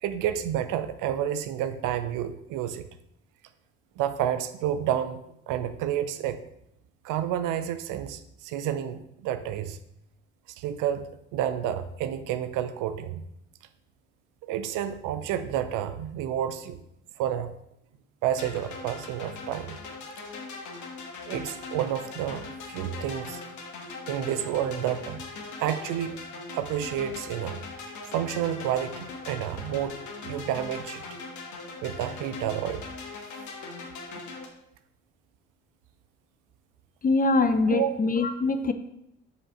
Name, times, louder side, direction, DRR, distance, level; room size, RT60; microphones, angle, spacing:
voice 1, 0.0-2.8 4.0-6.4 7.0-9.8 10.6-13.3 14.4-16.8 17.2-17.5 18.2-19.8 21.3-23.4 24.1-25.3 25.6-26.2 26.5-27.6 28.1-31.0 31.8-32.8 37.7-38.0, right 10 dB, 65° right, 11 dB, 0.6 m, -30 dB
sound 1, 18.3-34.5, left 3 dB, 60° left, 1.3 m, -40 dB
voice 2, 37.0-38.7, left 3 dB, 25° left, 11 dB, 0.6 m, -23 dB
5.2 x 4.9 x 4.9 m, 0.79 s
hypercardioid pair, 55°, 33 cm